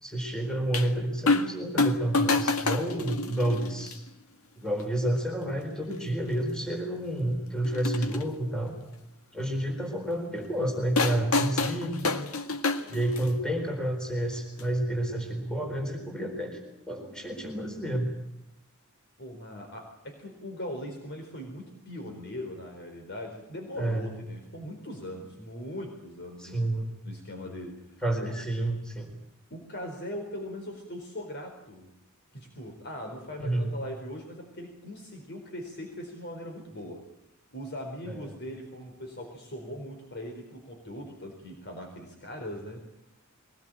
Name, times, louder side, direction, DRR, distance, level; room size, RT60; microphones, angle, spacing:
voice 1, 0.0-3.9 4.6-8.7 9.3-12.1 12.9-16.6 16.9-18.1 23.8-24.2 26.4-26.9 28.0-29.1 33.4-33.7 38.1-38.3, right 1 dB, 5° left, 2 dB, 4.2 m, -30 dB
sound 1, 0.7-0.9 1.3-1.5 1.8-3.9 4.8-4.9 5.9-6.0 6.3-6.4 7.6-8.2 11.0-13.4 14.6-14.7, left 3 dB, 75° left, 1.9 m, -27 dB
voice 2, 19.2-26.6 27.0-27.8 28.2-28.3 29.5-31.9 32.3-37.1 37.5-42.8, left 1 dB, 50° left, 3 dB, 4.4 m, -40 dB
22.5 x 20.0 x 9.1 m, 0.83 s
head